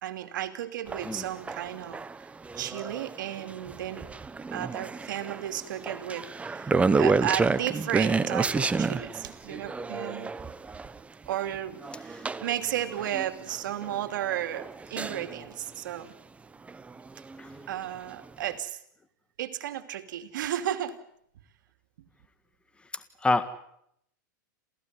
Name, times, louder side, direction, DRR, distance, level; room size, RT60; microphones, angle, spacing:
voice 1, 0.0-2.0 2.5-4.1 4.5-10.3 11.3-16.1 17.7-18.8 19.4-21.0, right 11 dB, 75° right, 8 dB, 2.7 m, -34 dB
sound 1, 0.9-15.6 16.7-17.9 18.2-18.3, right 4 dB, 10° right, 1.0 m, -30 dB
voice 2, 11.9-12.3 17.4-17.6 22.9-23.5, left 2 dB, 10° left, 11 dB, 1.8 m, -29 dB
28.0 x 16.5 x 9.6 m, 0.73 s
hypercardioid pair, 120°, 11 cm